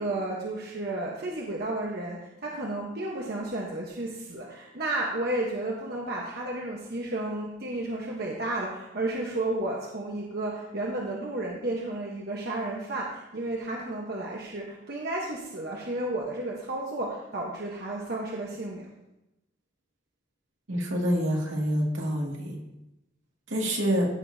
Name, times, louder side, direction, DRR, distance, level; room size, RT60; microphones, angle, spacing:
voice 1, 0.0-18.8, right 2 dB, 55° right, -2 dB, 1.1 m, -32 dB
voice 2, 20.7-22.6 23.5-24.1, equal, 80° right, -1 dB, 2.2 m, -27 dB
14.5 x 6.7 x 2.7 m, 0.92 s
head